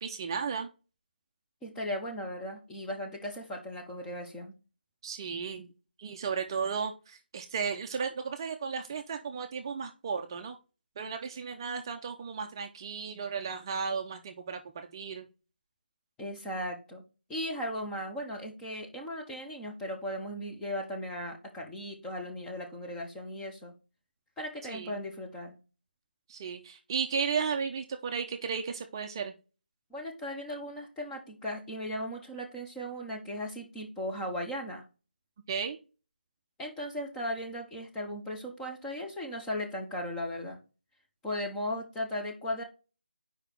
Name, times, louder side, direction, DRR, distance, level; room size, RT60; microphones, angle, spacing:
voice 1, 0.0-0.7 5.0-5.7 6.0-10.6 11.0-14.6 14.9-15.2 24.7-25.0 26.3-29.3 35.5-35.8, right 6 dB, 25° right, 5 dB, 0.5 m, -34 dB
voice 2, 1.6-4.5 16.2-17.0 17.3-23.7 24.4-25.6 29.9-34.8 36.6-40.6 41.2-42.6, left 1 dB, 5° left, 0 dB, 0.7 m, -37 dB
5.0 x 4.8 x 4.4 m, 0.32 s
figure-of-eight pair, 160°, 6 cm